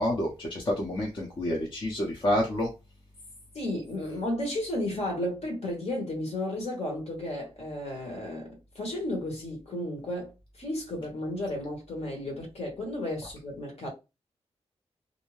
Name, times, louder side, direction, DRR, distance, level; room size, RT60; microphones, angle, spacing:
voice 1, 0.0-2.7, left 1 dB, 45° left, 0.7 m, -28 dB
voice 2, 3.5-10.3 10.6-13.9, left 1 dB, 65° left, 1.2 m, -33 dB
2.6 x 2.2 x 3.0 m
wide cardioid pair, 120°, 11 cm